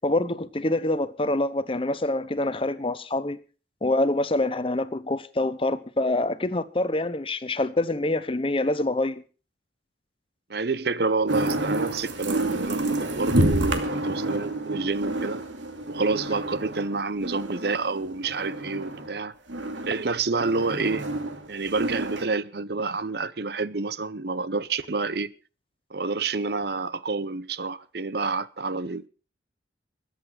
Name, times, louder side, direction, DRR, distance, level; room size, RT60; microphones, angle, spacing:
voice 1, 0.0-3.4 3.8-9.2, left 2 dB, 30° left, 0.8 m, -26 dB
voice 2, 10.5-15.4 15.9-19.3 19.8-21.0 21.5-25.3 25.9-29.1, right 3 dB, 55° right, 0.7 m, -28 dB
sound 1, 11.3-19.2 19.5-22.2, right 1 dB, 85° right, 2.5 m, -29 dB
21.5 x 8.2 x 6.1 m
head